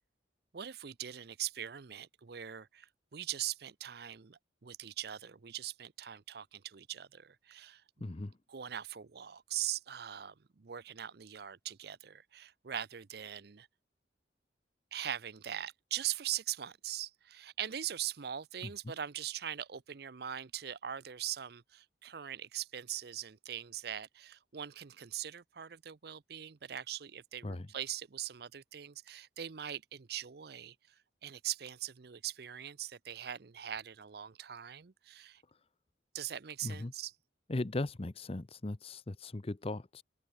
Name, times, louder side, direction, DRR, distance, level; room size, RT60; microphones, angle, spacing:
voice 1, 0.5-8.1 8.5-13.7 14.9-35.4 36.1-37.1, right 11 dB, 60° right, 0.6 m, -41 dB
voice 2, 8.0-8.3 27.4-27.7 36.6-36.9 37.5-40.0, left 2 dB, 35° left, 0.7 m, -38 dB
open air
head